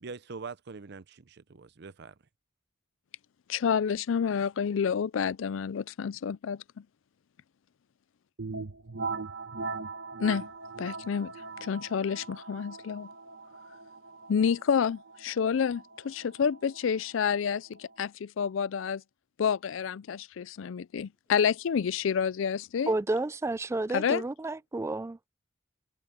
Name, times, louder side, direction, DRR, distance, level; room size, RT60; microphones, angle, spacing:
voice 1, 0.0-2.2, right 4 dB, 60° right, 0.7 m, -43 dB
voice 2, 3.5-6.8 10.2-10.5 10.8-11.3 11.6-13.1 14.3-19.0 19.4-22.9 23.9-24.2, left 7 dB, 85° left, 0.4 m, -29 dB
sound 1, 8.4-17.9, right 4 dB, 80° right, 1.5 m, -41 dB
voice 3, 22.9-25.2, right 2 dB, 15° right, 0.3 m, -31 dB
head